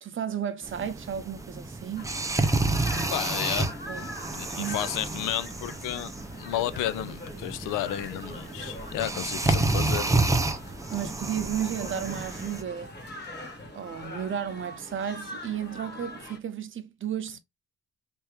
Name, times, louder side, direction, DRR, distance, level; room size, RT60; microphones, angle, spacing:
voice 1, 0.0-2.2 3.9-4.1 4.5-4.9 10.9-13.0 13.7-17.4, right 9 dB, 40° right, 0.7 m, -33 dB
sound 1, 0.6-12.6, right 2 dB, 10° right, 0.5 m, -30 dB
sound 2, 2.0-16.4, left 1 dB, 35° left, 1.5 m, -43 dB
voice 2, 3.1-3.7 4.3-6.1 6.4-10.1, left 13 dB, 90° left, 0.5 m, -32 dB
3.4 x 2.8 x 3.1 m
cardioid pair, 90°, 30 cm